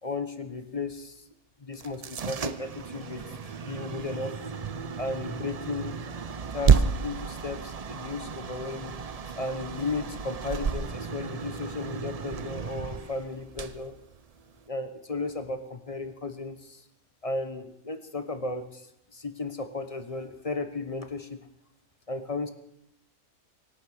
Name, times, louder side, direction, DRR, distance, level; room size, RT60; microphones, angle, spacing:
voice 1, 0.0-1.2 1.6-4.4 5.0-6.0 6.5-8.9 9.4-14.0 14.7-16.8 17.2-21.4 22.1-22.5, left 3 dB, 25° left, 9 dB, 1.0 m, -35 dB
sound 1, 1.7-14.7, right 6 dB, 70° right, 0.3 m, -31 dB
24.5 x 11.5 x 4.9 m, 0.78 s
omnidirectional pair, 1.6 m